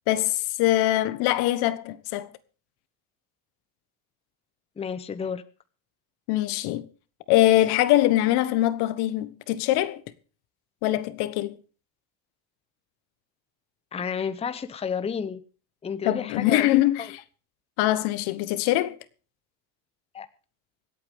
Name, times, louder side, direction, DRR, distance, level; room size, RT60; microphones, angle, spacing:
voice 1, 0.1-2.3 6.3-6.9 7.3-10.0 10.8-11.6 16.0-17.2 17.8-19.0, left 14 dB, 70° left, 1.3 m, -23 dB
voice 2, 4.8-5.4 13.9-15.4 15.8-16.8 20.1-20.3, left 6 dB, 15° left, 0.8 m, -31 dB
25.5 x 8.7 x 3.6 m
cardioid pair, 140°, 41 cm